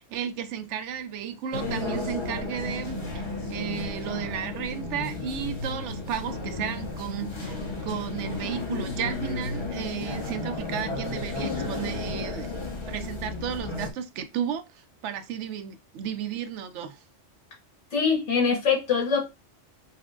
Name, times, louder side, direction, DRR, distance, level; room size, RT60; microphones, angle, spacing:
voice 1, 0.0-3.2 3.5-7.6 7.8-12.5 12.9-17.0, right 9 dB, 75° right, 0.9 m, -33 dB
sound 1, 1.5-13.9, left 2 dB, 25° left, 0.9 m, -33 dB
voice 2, 17.9-19.2, left 6 dB, 70° left, 1.6 m, -23 dB
5.7 x 2.1 x 2.4 m
omnidirectional pair, 1.2 m